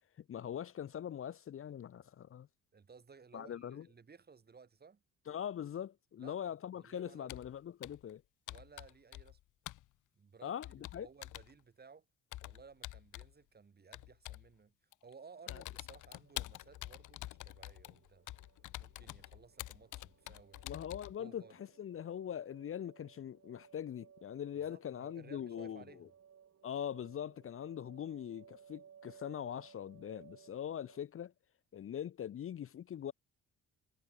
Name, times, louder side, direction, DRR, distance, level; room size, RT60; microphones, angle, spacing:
voice 1, 0.2-2.5 3.3-3.9 5.3-8.2 10.4-10.7 10.9-11.1 15.5-15.6 20.6-25.8 26.6-31.3 31.7-33.1, left 9 dB, 45° left, 0.7 m, -42 dB
voice 2, 2.7-5.0 6.2-7.3 8.5-9.4 10.1-12.1 12.4-14.8 15.0-18.3 18.8-20.7 21.2-21.5 24.7-26.1, right 5 dB, 30° right, 2.2 m, -58 dB
Computer keyboard, 7.3-7.5 7.8-8.1 8.5-9.4 9.7-9.9 10.6-11.5 12.3-13.3 13.9-14.5 14.9-15.1 15.5-21.2, left 16 dB, 85° left, 1.6 m, -47 dB
sound 1, 16.2-31.0, right 8 dB, 55° right, 6.6 m, -62 dB
cardioid pair, 90°, 30 cm